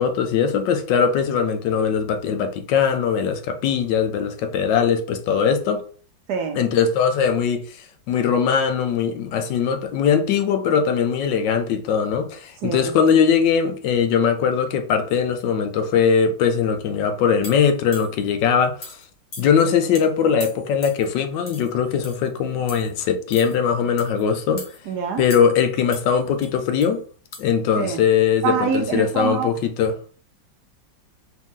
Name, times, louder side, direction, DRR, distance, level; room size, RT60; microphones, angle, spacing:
voice 1, 0.0-5.8 6.6-7.8 8.1-19.0 19.4-24.6 25.2-27.0 27.4-29.9, left 7 dB, 75° left, 1.3 m, -20 dB
voice 2, 6.3-6.6 12.6-12.9 24.9-25.2 27.8-28.0 28.4-29.5, right 6 dB, 70° right, 1.0 m, -25 dB
sound 1, 17.4-18.3 18.8-19.0 19.3-19.6 19.9-20.1 20.4-21.1 21.5-21.7 22.0-22.3 22.7-22.9 23.3-23.6 24.0-24.2 24.6-24.8 25.3-25.6 25.9-26.9 27.3-27.4, left 2 dB, 30° left, 0.9 m, -39 dB
4.4 x 2.5 x 3.6 m
omnidirectional pair, 2.0 m